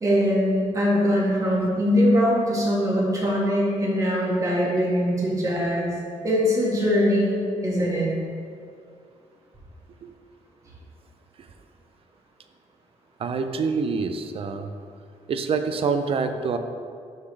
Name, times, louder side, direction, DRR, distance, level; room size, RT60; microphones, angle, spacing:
voice 1, 0.0-5.9 6.2-7.4 7.6-8.1, equal, 25° right, -5 dB, 1.8 m, -22 dB
voice 2, 13.2-14.7 15.3-16.6, right 5 dB, 45° right, 8 dB, 0.5 m, -26 dB
11.5 x 3.9 x 3.3 m, 2.3 s
cardioid pair, 125°, 13 cm